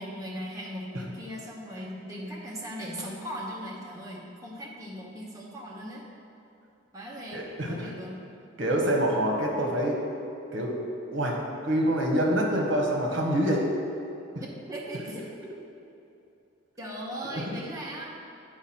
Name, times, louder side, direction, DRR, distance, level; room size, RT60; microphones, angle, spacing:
voice 1, 0.0-6.0 6.9-8.2 14.4-15.3 16.8-18.1, equal, 15° right, -4 dB, 1.0 m, -38 dB
voice 2, 7.3-7.9 8.6-10.0 10.5-10.7 11.1-11.4 11.6-13.7 17.3-17.4, right 1 dB, 60° right, 0 dB, 1.1 m, -26 dB
7.9 x 5.0 x 4.3 m, 2.7 s
head